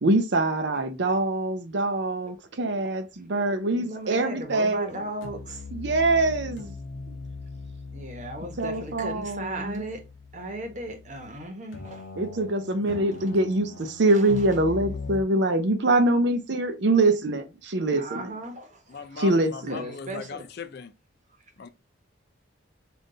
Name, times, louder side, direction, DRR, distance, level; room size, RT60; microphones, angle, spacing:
voice 1, 0.0-4.9 5.7-6.7 8.6-9.8 12.2-18.3 19.2-19.8, right 2 dB, 60° right, 0.6 m, -24 dB
voice 2, 3.7-5.7 7.9-10.0 10.3-12.1 12.9-13.3 14.0-14.6 17.9-20.5, right 1 dB, 40° right, 1.0 m, -37 dB
sound 1, 4.7-4.9 5.2-11.4 11.7-15.2, left 3 dB, 80° left, 0.8 m, -40 dB
voice 3, 18.9-20.9 21.6-21.7, left 5 dB, 55° left, 0.4 m, -39 dB
3.8 x 2.6 x 3.8 m
head